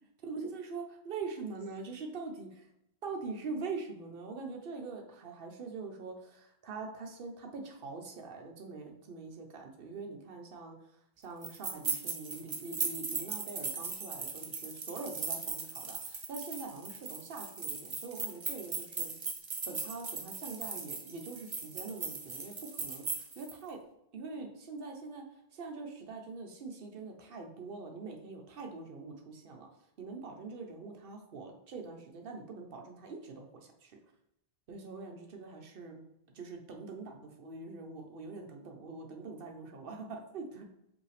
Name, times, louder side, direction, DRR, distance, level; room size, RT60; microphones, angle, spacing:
voice 1, 0.3-2.7 3.0-10.8 11.2-19.1 19.7-23.8 24.1-25.2 25.5-29.7 30.0-34.0 34.7-36.0 36.3-40.6, right 4 dB, 60° right, 2 dB, 0.9 m, -43 dB
sound 1, 11.4-23.5, right 4 dB, 35° right, 0.5 m, -38 dB
5.0 x 2.8 x 3.3 m, 0.80 s
omnidirectional pair, 1.1 m